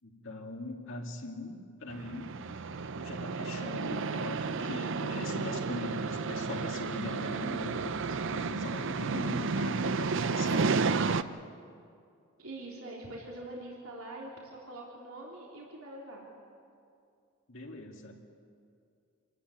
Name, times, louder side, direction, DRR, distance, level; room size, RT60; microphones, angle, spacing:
voice 1, 0.0-2.3 3.0-7.9 8.3-10.9 17.5-18.2, left 2 dB, 60° left, 1 dB, 2.6 m, -41 dB
sound 1, 1.9-11.2, right 4 dB, 60° right, 0.6 m, -32 dB
voice 2, 12.4-16.2, right 1 dB, 75° right, -3 dB, 3.7 m, -44 dB
27.5 x 14.0 x 9.7 m, 2.4 s
head